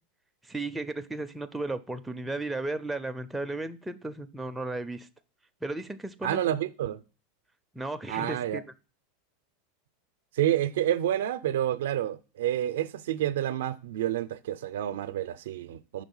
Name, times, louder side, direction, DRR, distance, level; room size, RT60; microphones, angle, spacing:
voice 1, 0.4-5.1 5.6-6.4 7.7-8.6, right 2 dB, 5° right, 0.4 m, -34 dB
voice 2, 6.2-7.0 8.1-8.6 10.3-16.0, right 12 dB, 80° right, 0.4 m, -29 dB
5.1 x 3.6 x 5.4 m
supercardioid pair, 120°, 0 cm